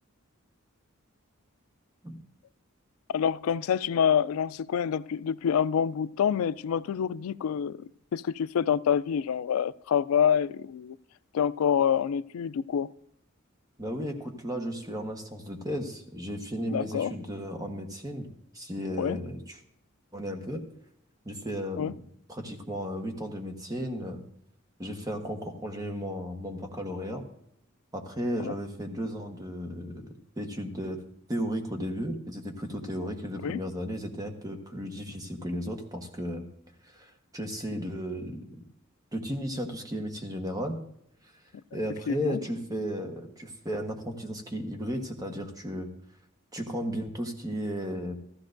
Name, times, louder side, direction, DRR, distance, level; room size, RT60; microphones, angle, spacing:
voice 1, 3.1-7.8 8.1-11.0 11.3-12.9 16.7-17.1 19.0-19.2 21.8-21.9 28.4-28.5 33.4-33.6 42.1-42.4, left 8 dB, 85° left, 0.3 m, -27 dB
voice 2, 13.8-18.3 18.5-19.6 20.1-20.6 21.2-22.0 22.3-24.2 24.8-27.2 27.9-30.1 30.4-31.0 31.3-36.5 36.8-38.5 39.1-40.8 41.7-45.9 46.5-48.2, equal, 20° right, 1.2 m, -34 dB
14.5 x 14.0 x 2.6 m
head